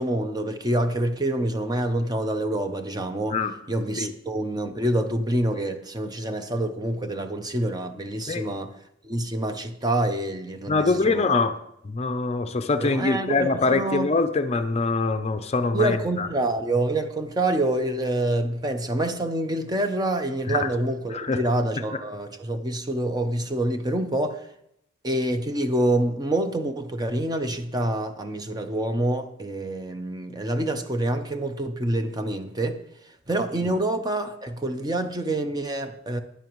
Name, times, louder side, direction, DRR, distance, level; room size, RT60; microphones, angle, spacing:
voice 1, 0.0-3.4 3.7-8.7 9.0-11.3 12.8-14.1 15.7-24.5 25.0-32.8 33.3-36.2, right 1 dB, 20° right, 0.7 m, -26 dB
voice 2, 10.7-11.6 11.8-16.3 20.5-20.7 21.1-21.4 33.6-33.7, left 3 dB, 35° left, 0.5 m, -24 dB
12.0 x 10.0 x 3.1 m
head